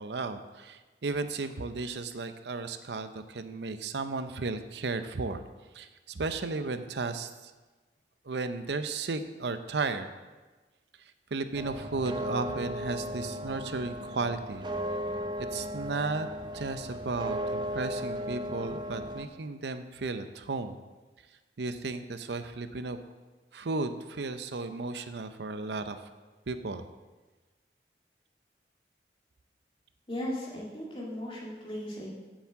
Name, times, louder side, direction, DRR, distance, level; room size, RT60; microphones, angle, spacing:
voice 1, 0.0-5.4 5.7-7.5 8.2-10.1 11.0-14.6 15.5-16.3 16.5-20.8 21.6-23.0 23.5-26.1 26.5-26.8, right 3 dB, 75° right, 10 dB, 0.6 m, -34 dB
sound 1, 11.5-19.3, equal, 25° right, 0.6 m, -36 dB
voice 2, 30.1-32.1, left 1 dB, 30° left, -4 dB, 2.5 m, -37 dB
7.2 x 7.2 x 7.3 m, 1.2 s
head